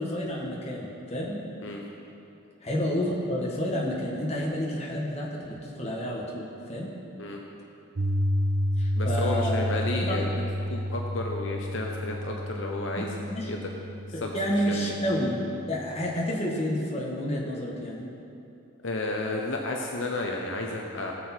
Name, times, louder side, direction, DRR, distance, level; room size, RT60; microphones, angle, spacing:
voice 1, 0.0-1.4 2.6-6.9 8.8-10.2 12.9-13.5 14.1-18.1, equal, 30° left, -3 dB, 1.7 m, -30 dB
Piano, 8.0-16.1, equal, 70° right, 0.7 m, -30 dB
voice 2, 9.0-13.1 13.5-13.7 14.2-14.8 18.8-21.1, left 2 dB, 70° left, 0 dB, 0.9 m, -32 dB
18.0 x 6.8 x 4.5 m, 2.7 s
head